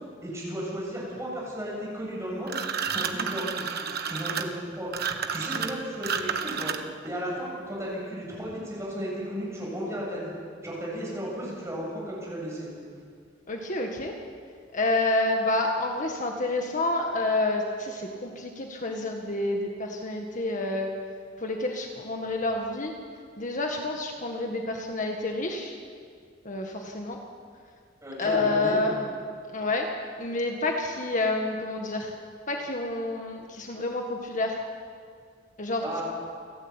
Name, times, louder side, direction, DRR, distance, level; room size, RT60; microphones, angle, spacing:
voice 1, 0.2-2.6 2.9-3.6 4.1-4.9 5.3-6.7 7.0-10.3 10.6-12.7 28.0-28.8 35.8-36.0, equal, 15° right, -4 dB, 7.9 m, -34 dB
sound 1, 2.5-7.1, right 6 dB, 55° right, 1.2 m, -31 dB
voice 2, 13.5-14.1 14.7-20.9 21.4-22.9 23.4-25.7 26.5-27.2 28.2-29.0 29.5-29.9 30.2-32.1 32.5-34.6 35.6-36.0, left 2 dB, 40° left, 2 dB, 1.8 m, -28 dB
29.5 x 12.5 x 9.0 m, 2.1 s
head